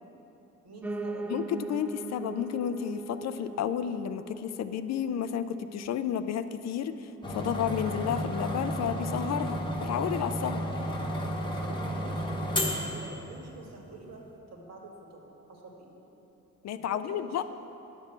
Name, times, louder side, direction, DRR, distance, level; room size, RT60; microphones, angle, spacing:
voice 1, 0.6-1.3 10.7-14.2 14.5-15.9 16.7-17.4, right 2 dB, 60° right, -1 dB, 1.9 m, -48 dB
Piano, 0.8-9.9 10.3-11.5 11.8-11.9 12.1-12.2 12.4-12.5 13.1-13.2, right 3 dB, 5° right, 0.4 m, -42 dB
voice 2, 1.3-10.6 16.6-17.4, left 9 dB, 60° left, 11 dB, 0.4 m, -32 dB
sound 1, 7.2-13.7, equal, 15° left, 1.1 m, -32 dB
10.0 x 4.5 x 7.1 m, 2.9 s
cardioid pair, 90°, 30 cm